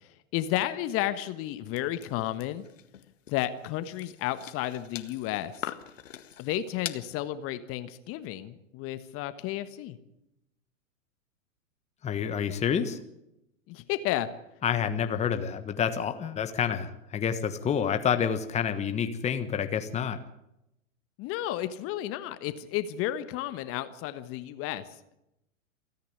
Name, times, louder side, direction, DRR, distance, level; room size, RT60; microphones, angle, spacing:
voice 1, 0.0-2.6 3.3-5.7 6.4-10.0 13.7-14.3 21.2-25.0, left 13 dB, 35° left, 12 dB, 1.4 m, -32 dB
sound 1, 1.8-7.1, left 10 dB, 70° left, 1.8 m, -42 dB
voice 2, 12.0-13.0 14.6-20.2, left 8 dB, 15° left, 9 dB, 1.3 m, -28 dB
28.5 x 10.5 x 9.7 m, 0.86 s
hypercardioid pair, 110°, 40 cm